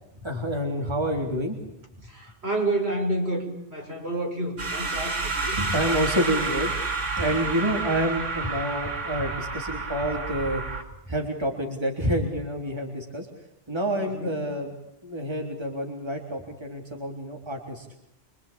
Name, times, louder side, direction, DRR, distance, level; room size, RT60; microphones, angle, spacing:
voice 1, 0.2-1.6 4.9-5.1 5.4-6.7 7.2-10.6 11.1-13.3 13.7-14.7 15.0-17.9, equal, 20° right, 1 dB, 3.7 m, -28 dB
voice 2, 2.1-5.7 14.0-14.3, right 2 dB, 60° right, 2 dB, 6.5 m, -29 dB
sound 1, 4.6-10.8, right 3 dB, 85° right, 2.8 m, -30 dB
25.5 x 25.5 x 8.8 m, 0.81 s
omnidirectional pair, 1.2 m